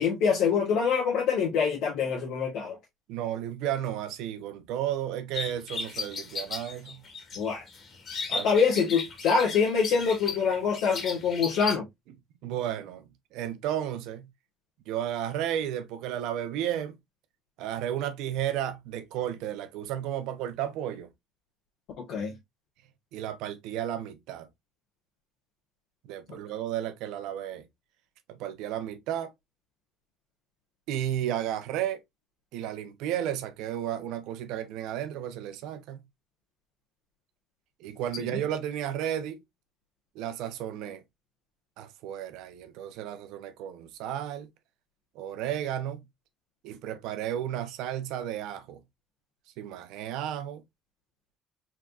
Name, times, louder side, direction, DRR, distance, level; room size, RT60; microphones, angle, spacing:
voice 1, 0.0-2.8 7.3-7.6 8.3-11.8 22.0-22.3 38.2-38.4, left 6 dB, 80° left, 1.6 m, -25 dB
voice 2, 3.1-7.0 8.3-8.5 12.4-13.0 13.3-14.3 14.9-17.0 17.6-21.1 23.1-24.5 26.1-27.7 28.3-29.3 30.9-32.0 32.5-36.0 37.8-39.4 40.1-41.0 41.8-44.5 45.1-46.0 46.6-48.8 49.6-50.6, right 11 dB, 85° right, 0.8 m, -33 dB
sound 1, 5.3-11.8, left 4 dB, 45° left, 1.9 m, -36 dB
4.4 x 3.7 x 2.4 m
cardioid pair, 115°, 0 cm